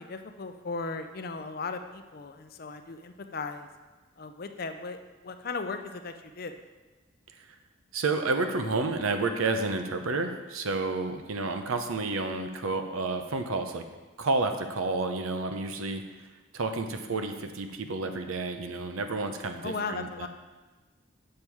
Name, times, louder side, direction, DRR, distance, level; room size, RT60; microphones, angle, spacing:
voice 1, 0.0-3.7 4.2-5.0 5.2-6.5 19.6-20.3, left 4 dB, 45° left, 7 dB, 0.5 m, -37 dB
voice 2, 7.9-13.8 14.2-16.0 16.5-20.3, right 3 dB, 85° right, 6 dB, 0.7 m, -30 dB
7.3 x 6.6 x 4.6 m, 1.3 s
head